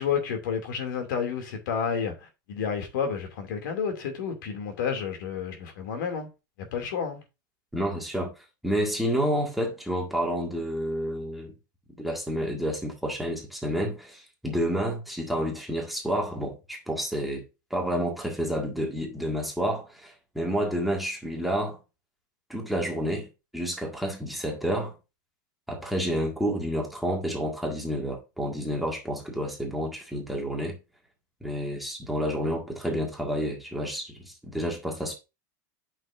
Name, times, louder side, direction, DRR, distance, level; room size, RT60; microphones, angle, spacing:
voice 1, 0.0-6.3 6.6-7.2, left 6 dB, 65° left, 2.5 m, -30 dB
voice 2, 7.7-8.3 8.6-11.5 12.0-17.4 17.7-21.8 22.5-25.0 25.7-30.8 31.4-35.2, equal, ahead, 1.9 m, -29 dB
8.6 x 6.2 x 2.6 m
supercardioid pair, 150°, 11 cm